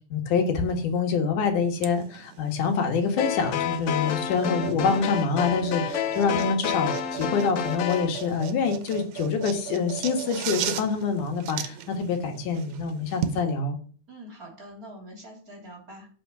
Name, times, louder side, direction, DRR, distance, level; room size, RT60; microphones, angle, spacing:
voice 1, 0.1-13.8, left 5 dB, 90° left, 5 dB, 3.1 m, -26 dB
sound 1, 1.8-13.4, right 10 dB, 75° right, 2.1 m, -37 dB
sound 2, 3.2-8.1, left 8 dB, 65° left, 1.6 m, -29 dB
voice 2, 14.1-16.1, right 1 dB, 30° right, 1 dB, 3.2 m, -44 dB
8.2 x 6.0 x 6.1 m, 0.43 s
omnidirectional pair, 3.5 m